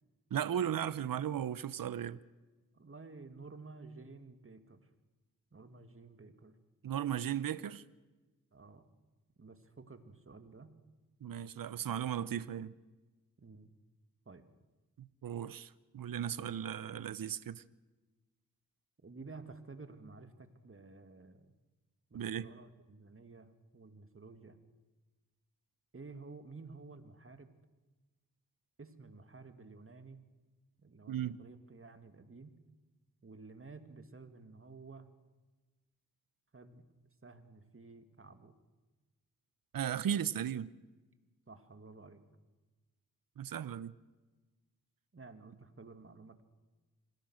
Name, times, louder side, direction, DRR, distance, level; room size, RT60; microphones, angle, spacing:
voice 1, 0.3-2.2 6.8-7.8 11.2-12.7 15.0-17.6 22.1-22.5 31.1-31.4 39.7-40.7 43.4-43.9, right 9 dB, 75° right, 0.9 m, -36 dB
voice 2, 2.7-4.9 5.5-6.6 8.5-8.9 9.4-10.8 13.4-13.7 14.3-14.5 19.0-21.5 22.1-24.6 25.9-27.5 28.8-30.2 30.8-32.5 33.2-35.1 36.5-36.9 37.2-38.5 41.5-42.2 45.1-46.4, right 3 dB, 40° right, 2.6 m, -52 dB
26.5 x 18.5 x 6.5 m
cardioid pair, 55°, 35 cm